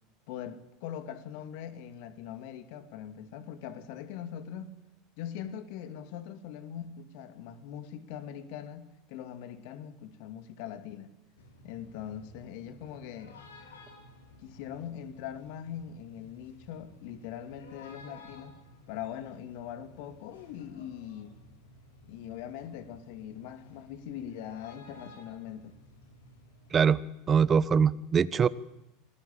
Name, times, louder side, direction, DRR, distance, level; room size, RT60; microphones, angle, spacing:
voice 1, 0.3-4.7 5.2-11.1 11.6-13.4 14.4-18.6 18.9-21.3 22.1-25.8, left 9 dB, 60° left, 2.6 m, -41 dB
Man shouting in Giza Egypt, 11.4-26.8, left 1 dB, 80° left, 4.6 m, -54 dB
voice 2, 27.3-28.5, right 6 dB, 30° right, 1.2 m, -23 dB
27.5 x 20.5 x 8.8 m
figure-of-eight pair, 80°, 0 cm